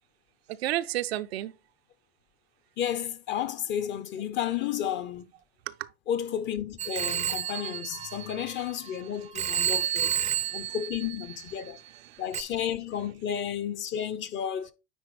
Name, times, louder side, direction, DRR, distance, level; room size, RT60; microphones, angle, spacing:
voice 1, 0.5-1.5 5.7-5.9 7.9-8.3 9.0-9.1 9.6-10.8 11.6-12.2, right 14 dB, 75° right, 0.6 m, -35 dB
voice 2, 2.8-5.3 6.1-10.2 10.5-11.8 12.2-14.7, left 9 dB, 35° left, 0.8 m, -32 dB
Telephone, 6.8-8.9 9.3-11.7 12.3-12.4, right 10 dB, 20° right, 0.5 m, -31 dB
9.5 x 4.0 x 3.2 m
hypercardioid pair, 95°, 31 cm